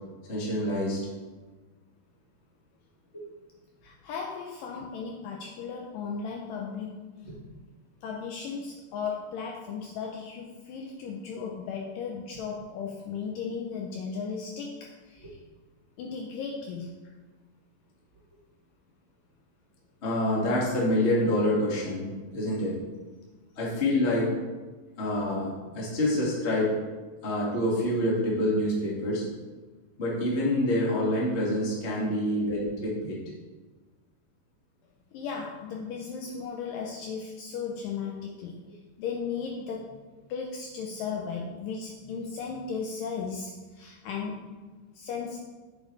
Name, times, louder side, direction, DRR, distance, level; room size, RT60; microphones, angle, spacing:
voice 1, 0.3-1.0 3.1-3.2 20.0-22.1 22.3-22.8 23.5-24.3 25.0-26.7 27.2-29.2 30.0-33.2, left 1 dB, 35° left, -6 dB, 1.1 m, -26 dB
voice 2, 3.8-7.1 8.0-15.4 16.0-17.0 35.1-40.0 40.3-44.6 45.0-45.4, left 5 dB, 80° left, 0 dB, 2.0 m, -36 dB
8.1 x 7.2 x 3.2 m, 1.3 s
omnidirectional pair, 4.4 m